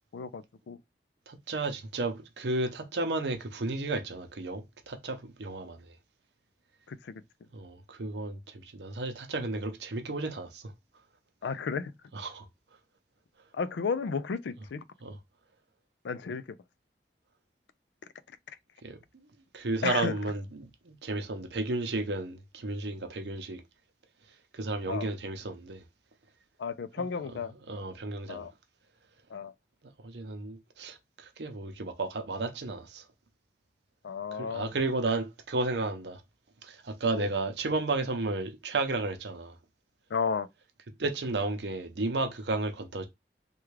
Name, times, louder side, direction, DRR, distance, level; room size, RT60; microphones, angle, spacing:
voice 1, 0.1-0.8 6.9-7.2 11.4-11.9 13.5-14.8 16.0-16.6 19.8-20.1 24.9-25.1 26.6-27.5 28.3-28.5 29.3-29.5 34.0-34.7 37.1-37.3 40.1-40.5, left 5 dB, 85° left, 0.4 m, -33 dB
voice 2, 1.3-5.9 7.5-10.6 12.1-12.5 15.0-15.2 18.8-19.0 19.5-23.6 24.5-25.8 27.7-28.5 30.0-33.0 34.3-36.2 36.6-39.5 41.0-43.1, right 2 dB, 80° right, 0.7 m, -33 dB
3.4 x 2.3 x 3.2 m
head